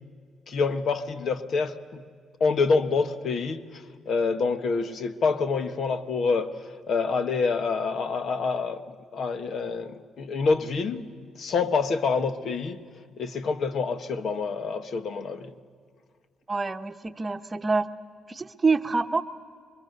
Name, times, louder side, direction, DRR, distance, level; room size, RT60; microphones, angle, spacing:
voice 1, 0.5-2.0 2.4-6.6 6.9-8.8 9.1-11.1 11.4-12.8 13.2-15.5, left 4 dB, 60° left, 1.4 m, -27 dB
voice 2, 16.5-17.9 18.3-19.2, right 4 dB, 25° right, 1.0 m, -26 dB
28.5 x 23.5 x 6.8 m
cardioid pair, 90°, 0 cm